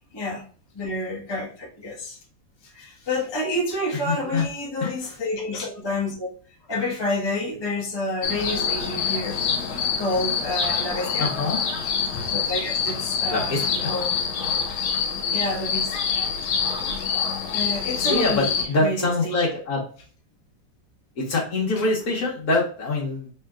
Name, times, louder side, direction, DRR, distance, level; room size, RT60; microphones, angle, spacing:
voice 1, 0.1-0.4 0.7-2.2 2.6-6.3 6.7-9.4 10.0-11.3 12.2-14.2 15.3-15.9 17.5-19.3 21.8-21.9, left 1 dB, 20° left, -3 dB, 0.7 m, -29 dB
voice 2, 4.1-4.4 4.8-4.9 11.2-11.6 13.3-13.9 18.1-19.8 21.2-23.3, left 2 dB, 50° left, -2 dB, 1.6 m, -24 dB
sound 1, 8.2-18.6, left 6 dB, 80° left, 1.6 m, -26 dB
4.3 x 3.3 x 2.3 m, 0.42 s
omnidirectional pair, 2.2 m